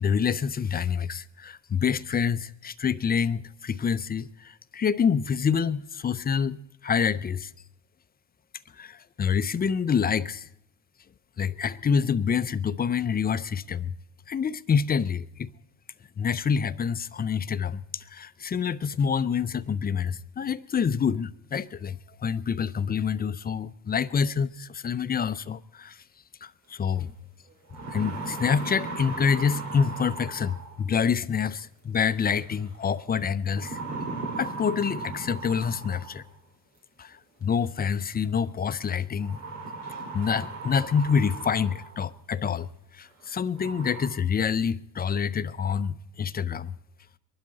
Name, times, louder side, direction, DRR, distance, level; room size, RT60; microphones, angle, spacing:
voice 1, 0.0-7.5 8.7-10.5 11.4-14.0 14.3-15.5 16.2-26.0 26.4-27.1 27.9-33.8 34.4-36.2 37.0-39.4 40.1-46.8, left 6 dB, 20° left, 0.5 m, -27 dB
sound 1, 26.9-27.0 27.5-30.9 32.3-32.7 33.5-36.3 37.6-37.7 39.2-42.1 42.6-42.7 43.2-43.3 43.6-44.1, right 3 dB, 90° right, 2.5 m, -37 dB
23.0 x 12.0 x 4.0 m
hypercardioid pair, 65°, 44 cm